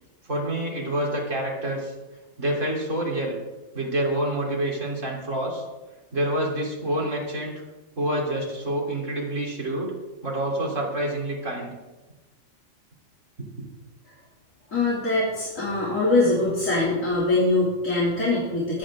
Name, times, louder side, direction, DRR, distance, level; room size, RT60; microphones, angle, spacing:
voice 1, 0.3-1.9 2.4-3.3 3.7-5.6 6.1-7.5 8.0-9.9 10.2-11.7, right 1 dB, 75° right, -3 dB, 3.8 m, -27 dB
voice 2, 14.7-18.8, left 2 dB, 85° left, -7 dB, 3.4 m, -23 dB
22.5 x 9.1 x 3.7 m, 1.2 s
omnidirectional pair, 1.3 m